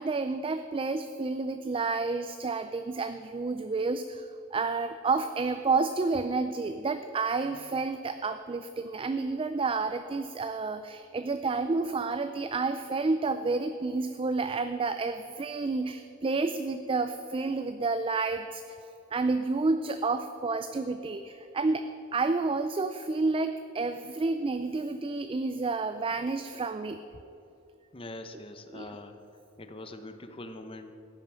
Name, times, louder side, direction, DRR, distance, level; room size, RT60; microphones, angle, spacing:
voice 1, 0.0-18.8 19.1-21.8 22.1-27.0 28.7-28.9, right 3 dB, 25° right, 9 dB, 0.4 m, -30 dB
voice 2, 27.9-29.2 29.6-30.9, left 1 dB, 25° left, 7 dB, 0.9 m, -43 dB
15.5 x 9.1 x 6.2 m, 2.9 s
head